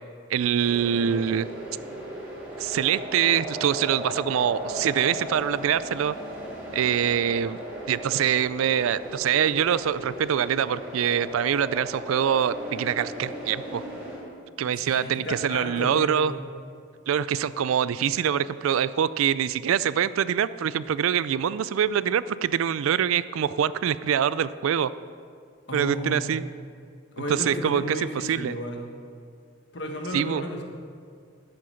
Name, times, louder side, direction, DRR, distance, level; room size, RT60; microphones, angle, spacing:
voice 1, 0.3-1.5 2.6-6.1 6.7-7.6 7.9-13.8 14.6-16.3 17.1-24.9 25.7-26.4 27.3-28.5 30.1-30.4, right 8 dB, 90° right, 16 dB, 0.3 m, -24 dB
sound 1, 0.6-14.2, right 1 dB, 10° right, 3.0 m, -37 dB
voice 2, 14.8-16.4 25.7-26.3 27.2-28.8 29.7-30.6, equal, 55° left, 2 dB, 1.4 m, -33 dB
11.5 x 7.8 x 5.7 m, 2.2 s
head